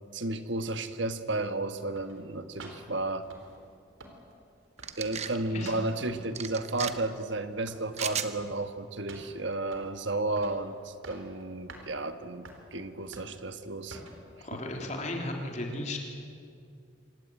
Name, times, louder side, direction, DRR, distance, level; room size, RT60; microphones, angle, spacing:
voice 1, 0.1-3.3 5.0-14.0 14.5-14.6, right 2 dB, 70° right, 9 dB, 1.4 m, -33 dB
sound 1, 2.0-3.8 4.0-4.5 4.8-7.2 7.4-8.6 9.1-10.0 10.4-10.6 10.9-11.3 11.7-11.9 12.4-12.6 13.1-13.5 13.9-14.2 14.8-14.9, right 2 dB, 85° right, 3.8 m, -48 dB
sound 2, 4.8-5.4 6.4-6.9 7.9-8.3, right 8 dB, 35° right, 1.0 m, -34 dB
voice 2, 14.4-16.0, left 1 dB, 35° left, 1 dB, 3.5 m, -35 dB
26.0 x 17.5 x 9.5 m, 2.4 s
head